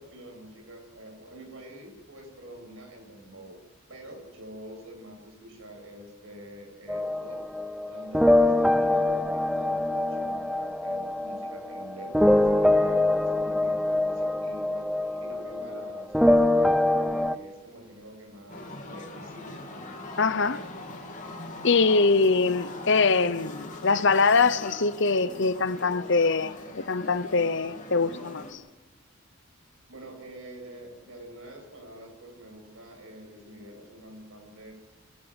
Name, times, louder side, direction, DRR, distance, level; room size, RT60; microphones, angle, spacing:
voice 1, 0.0-3.6 3.9-7.4 7.9-19.6 29.9-34.7, right 1 dB, 65° right, 7.4 m, -46 dB
sound 1, 6.9-17.3, left 1 dB, ahead, 0.6 m, -24 dB
sound 2, 18.5-28.5, left 2 dB, 35° left, 3.1 m, -41 dB
voice 2, 20.2-20.6 21.6-28.6, left 4 dB, 55° left, 0.9 m, -23 dB
26.0 x 12.5 x 8.1 m
head